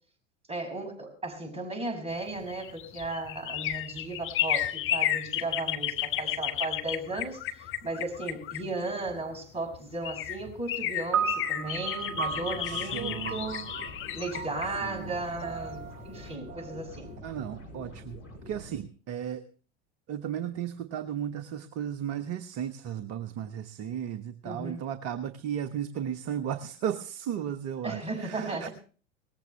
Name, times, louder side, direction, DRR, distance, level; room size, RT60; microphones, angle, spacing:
voice 1, 0.5-13.6 14.1-17.1 24.4-24.9 27.8-28.7, right 2 dB, 15° right, 6.0 m, -35 dB
sound 1, 2.4-9.2 9.7-9.8 10.0-15.8 16.2-16.3, left 12 dB, 35° left, 1.1 m, -33 dB
sound 2, 11.1-17.6, right 7 dB, 85° right, 0.7 m, -36 dB
sound 3, 11.6-18.8, left 1 dB, 70° left, 6.1 m, -46 dB
voice 2, 12.6-13.4 14.7-15.1 17.2-18.2 18.5-19.4 20.1-28.7, right 9 dB, 40° right, 1.1 m, -35 dB
19.0 x 15.0 x 3.3 m
figure-of-eight pair, 80°, 36 cm